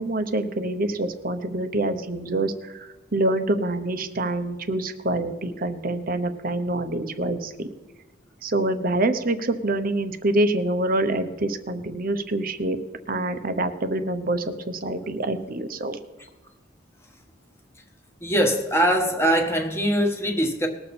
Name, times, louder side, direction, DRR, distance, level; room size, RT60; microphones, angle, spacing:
voice 1, 0.0-7.7 8.4-12.8 13.1-16.0, right 2 dB, 45° right, 9 dB, 0.9 m, -26 dB
voice 2, 18.2-20.7, equal, 10° left, 3 dB, 1.4 m, -22 dB
20.0 x 6.9 x 4.3 m, 1.1 s
head